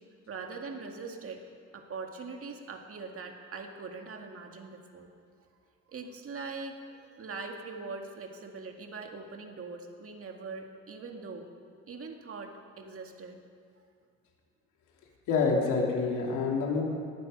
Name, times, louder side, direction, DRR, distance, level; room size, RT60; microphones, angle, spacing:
voice 1, 0.3-1.5 1.7-5.1 5.9-11.5 11.9-13.4, right 4 dB, 50° right, 3 dB, 2.0 m, -42 dB
voice 2, 15.3-16.8, left 4 dB, 90° left, -1 dB, 2.7 m, -27 dB
19.0 x 11.5 x 5.4 m, 2.3 s
cardioid pair, 90°, 30 cm